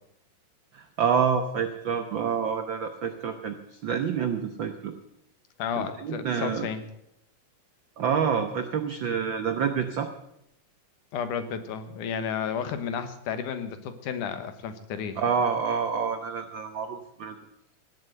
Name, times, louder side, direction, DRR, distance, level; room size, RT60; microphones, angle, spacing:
voice 1, 0.7-4.9 5.8-6.7 8.0-10.1 15.2-17.4, right 6 dB, 90° right, 7 dB, 1.0 m, -28 dB
voice 2, 5.6-6.8 11.1-15.2, left 7 dB, 80° left, 10 dB, 2.8 m, -32 dB
18.0 x 8.0 x 7.8 m, 0.80 s
omnidirectional pair, 3.6 m